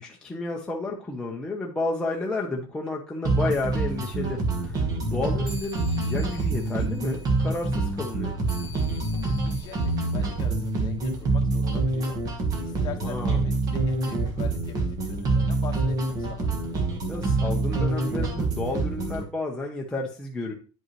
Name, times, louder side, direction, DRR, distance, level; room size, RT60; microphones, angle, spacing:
voice 1, 0.0-8.4 13.0-13.4 17.1-20.5, left 2 dB, 5° left, -2 dB, 0.8 m, -31 dB
sound 1, 3.3-19.3, right 3 dB, 30° right, 1.4 m, -26 dB
sound 2, 5.4-11.3, left 4 dB, 10° right, 3.1 m, -49 dB
voice 2, 9.3-12.2 12.6-16.5, left 8 dB, 35° left, 2 dB, 1.3 m, -42 dB
9.9 x 5.3 x 3.1 m, 0.35 s
cardioid pair, 175°, 13 cm